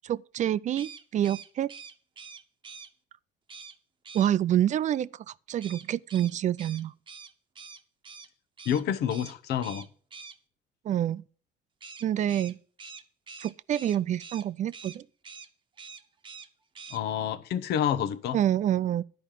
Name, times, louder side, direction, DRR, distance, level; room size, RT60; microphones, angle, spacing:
voice 1, 0.0-1.7 4.1-6.9 10.8-11.2 12.0-12.6 13.4-15.1 18.3-19.0, right 11 dB, 45° right, 0.4 m, -27 dB
sound 1, 0.7-2.9 3.5-3.8 4.0-4.3 5.6-8.3 8.6-8.8 9.1-9.3 9.6-10.4 11.8-14.5 14.7-15.0 15.2-15.5 15.8-16.5 16.7-17.0, right 5 dB, 30° right, 1.0 m, -45 dB
voice 2, 8.7-9.9 16.9-18.4, left 9 dB, 75° left, 0.9 m, -28 dB
11.0 x 5.2 x 7.3 m
cardioid pair, 110°, 17 cm